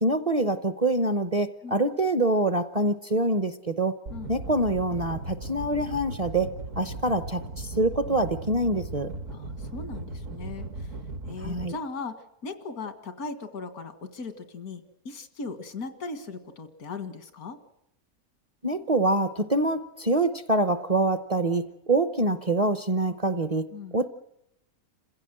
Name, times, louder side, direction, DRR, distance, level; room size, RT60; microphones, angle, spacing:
voice 1, 0.0-4.0 4.3-9.1 11.4-11.7 18.6-23.7 23.9-24.1, right 2 dB, 30° right, 11 dB, 0.8 m, -25 dB
sound 1, 4.1-11.7, right 2 dB, 60° right, 1.6 m, -37 dB
voice 2, 9.3-10.9 11.3-17.6 23.7-24.0, left 4 dB, 90° left, 9 dB, 2.2 m, -38 dB
27.5 x 16.0 x 7.7 m, 0.81 s
omnidirectional pair, 1.5 m